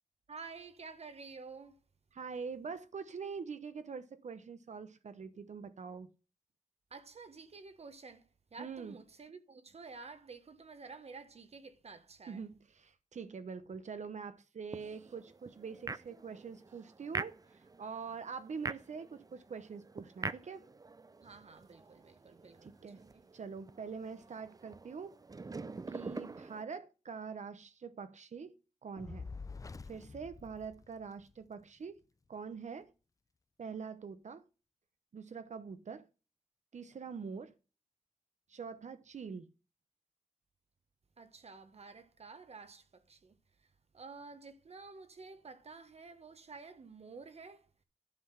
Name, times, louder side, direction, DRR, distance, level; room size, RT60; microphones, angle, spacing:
voice 1, 0.3-1.8 6.9-12.4 21.2-22.7 23.0-23.2 41.2-43.4 43.9-47.7, right 4 dB, 60° right, 1.2 m, -51 dB
voice 2, 2.1-6.1 8.6-9.0 12.3-20.7 22.6-23.0 23.3-25.2 25.9-29.2 29.9-32.0 32.3-32.9 33.6-34.4 35.1-36.1 36.7-37.5 38.5-39.5, right 5 dB, 80° right, 0.9 m, -44 dB
sound 1, 14.7-26.6, right 3 dB, 30° right, 0.5 m, -46 dB
Fire, 29.0-31.4, left 4 dB, 30° left, 0.4 m, -47 dB
11.0 x 5.8 x 5.7 m
wide cardioid pair, 120°, 12 cm